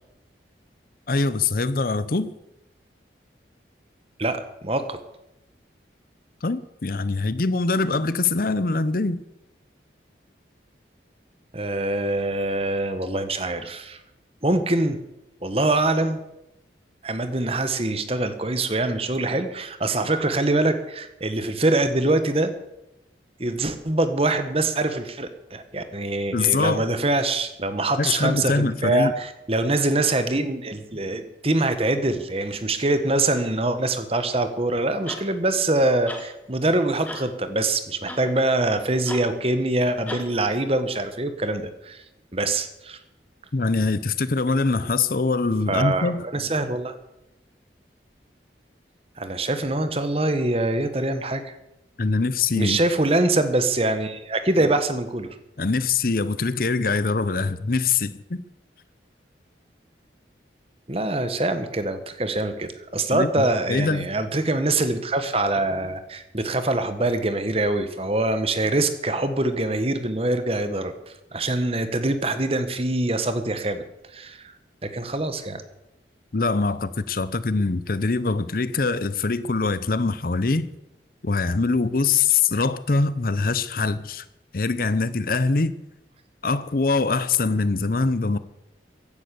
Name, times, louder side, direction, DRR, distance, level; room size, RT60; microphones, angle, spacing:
voice 1, 1.1-2.3 6.4-9.2 26.3-26.9 28.0-29.1 43.5-46.2 52.0-52.8 55.6-58.4 63.1-64.1 76.3-80.7 81.2-84.2 84.5-85.8 86.4-88.4, left 4 dB, 50° left, 0.7 m, -23 dB
voice 2, 4.2-5.0 11.5-14.0 14.4-15.0 15.4-16.2 17.0-22.5 23.4-42.0 42.3-43.0 45.7-46.9 49.2-51.5 52.5-55.3 60.9-73.8 74.1-74.5 74.8-75.6, right 2 dB, 30° right, 1.3 m, -24 dB
sound 1, 35.1-35.3 36.1-36.3 37.1-37.3 38.1-38.3 39.1-39.3 40.1-40.3 41.1-41.2, left 1 dB, 10° left, 1.8 m, -36 dB
16.0 x 11.0 x 6.9 m
head